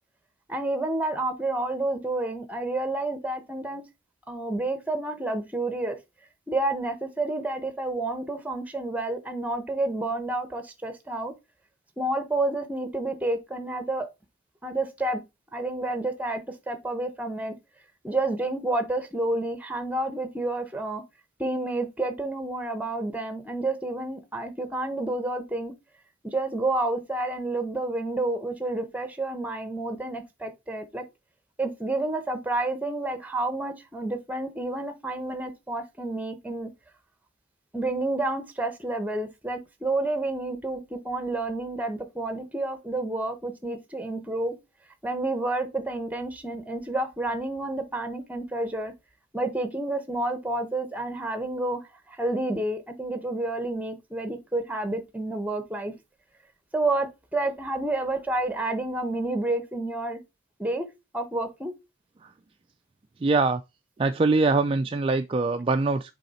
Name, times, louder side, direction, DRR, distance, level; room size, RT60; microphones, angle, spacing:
voice 1, 0.5-3.8 4.3-6.0 6.5-11.3 12.0-14.1 14.6-15.2 15.5-17.5 18.0-21.0 21.4-25.7 26.2-31.0 31.6-36.7 37.7-44.6 45.0-48.9 49.3-55.9 56.7-60.2 60.6-60.9 61.1-61.7, right 2 dB, 10° right, 0.9 m, -29 dB
voice 2, 63.2-63.6 64.0-66.1, right 3 dB, 25° right, 0.3 m, -23 dB
6.7 x 4.1 x 4.1 m
head